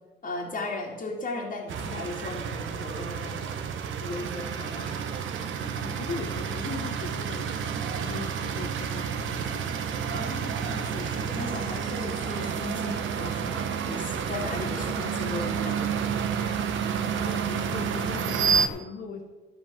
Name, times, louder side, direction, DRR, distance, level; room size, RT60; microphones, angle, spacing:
voice 1, 0.2-3.6 4.0-5.4 10.1-15.8, left 2 dB, 45° left, -2 dB, 2.1 m, -36 dB
sound 1, 1.7-18.7, right 7 dB, 85° right, 1.0 m, -30 dB
voice 2, 5.6-9.8 17.1-19.2, left 5 dB, 80° left, 2 dB, 1.3 m, -39 dB
13.5 x 5.3 x 7.5 m, 1.1 s
cardioid pair, 80°, 20 cm